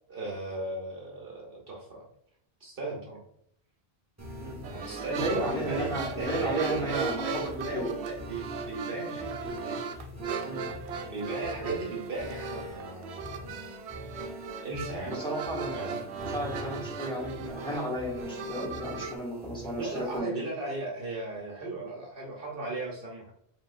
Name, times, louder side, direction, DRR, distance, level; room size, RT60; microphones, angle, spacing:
voice 1, 0.1-2.0 2.6-3.2 4.7-9.9 10.3-10.5 11.1-13.7 14.6-15.2 15.7-16.0 19.8-23.3, right 2 dB, 60° right, -1 dB, 1.1 m, -37 dB
sound 1, 4.2-20.2, left 2 dB, 15° right, 1.0 m, -44 dB
sound 2, 4.6-19.1, right 5 dB, 85° right, 0.8 m, -37 dB
voice 2, 5.1-7.9 10.4-10.7 15.0-20.4, right 1 dB, 5° left, -6 dB, 1.6 m, -34 dB
5.0 x 3.6 x 2.4 m, 0.70 s
omnidirectional pair, 1.1 m